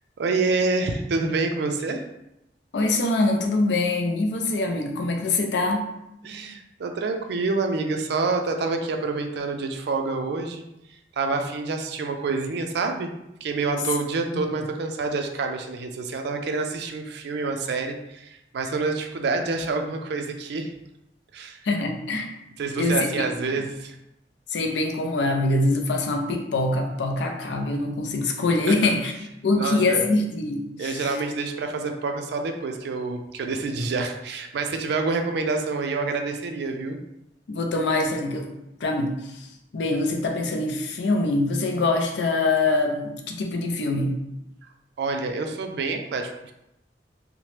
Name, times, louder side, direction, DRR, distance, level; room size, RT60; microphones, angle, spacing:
voice 1, 0.2-2.1 6.2-10.6 11.2-13.1 13.4-20.7 21.3-21.6 22.6-23.9 28.7-28.9 29.5-30.0 30.8-37.0 45.0-46.5, right 3 dB, 65° right, 5 dB, 0.4 m, -27 dB
voice 2, 2.7-5.9 14.3-14.4 21.6-22.3 22.8-23.1 23.5-23.6 24.5-29.1 29.4-31.0 37.5-38.5 38.8-39.5 39.7-44.2, left 2 dB, 70° left, 3 dB, 0.4 m, -24 dB
2.9 x 2.0 x 3.1 m, 0.87 s
head